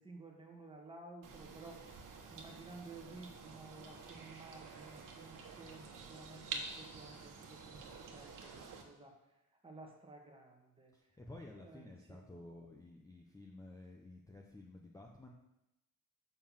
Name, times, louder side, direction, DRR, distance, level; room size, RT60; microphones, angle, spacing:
voice 1, 0.0-1.8 2.3-9.2 9.6-11.1 11.5-12.3, right 3 dB, 15° right, 1 dB, 1.4 m, -54 dB
sound 1, 1.2-8.8, right 4 dB, 70° right, 1.3 m, -49 dB
voice 2, 10.9-15.3, left 2 dB, 10° left, 0 dB, 0.6 m, -53 dB
6.8 x 5.7 x 7.2 m, 0.89 s
wide cardioid pair, 180°, 33 cm